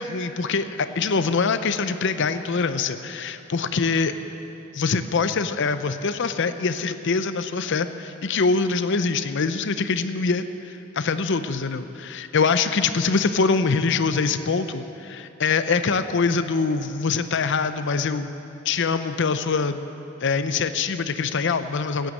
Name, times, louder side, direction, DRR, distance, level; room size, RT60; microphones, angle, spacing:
voice 1, 0.0-4.1 4.7-18.3 18.6-19.8 20.2-22.1, left 4 dB, 60° left, 11 dB, 0.6 m, -24 dB
15.0 x 9.1 x 7.8 m, 3.0 s
head